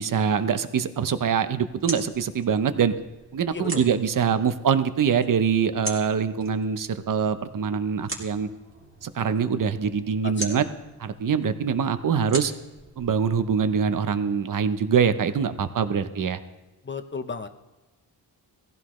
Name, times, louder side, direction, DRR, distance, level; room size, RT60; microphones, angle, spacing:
voice 1, 0.0-2.9 3.3-8.5 9.0-10.6 11.0-12.5 13.0-16.4, right 7 dB, 50° right, 11 dB, 0.8 m, -24 dB
sound 1, 1.2-14.0, right 1 dB, 30° right, 2.5 m, -41 dB
voice 2, 3.5-3.8 10.2-10.6 16.8-17.5, left 4 dB, 25° left, 8 dB, 0.8 m, -34 dB
18.0 x 15.0 x 3.2 m, 1.1 s
wide cardioid pair, 115°, 42 cm